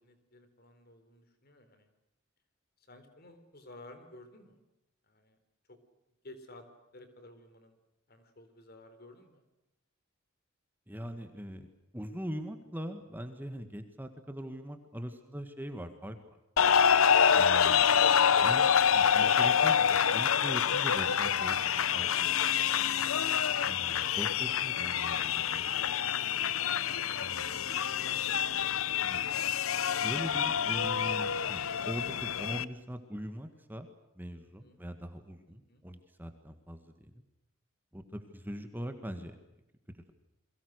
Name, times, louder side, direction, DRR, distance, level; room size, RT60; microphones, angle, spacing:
voice 1, 0.0-1.9 2.8-4.6 5.0-5.4 5.7-5.8 6.2-6.7 6.9-7.7 8.1-9.4 34.4-34.8 35.5-35.9, left 2 dB, 50° left, 9 dB, 3.9 m, -54 dB
voice 2, 10.9-11.7 11.9-16.2 17.4-17.9 18.3-22.4 23.7-25.8 27.2-27.6 29.0-29.2 30.0-33.9 34.2-37.2 37.9-39.4, equal, 10° right, 7 dB, 1.8 m, -42 dB
sound 1, 16.6-32.6, left 8 dB, 90° left, 0.8 m, -27 dB
29.5 x 23.0 x 6.6 m, 0.90 s
head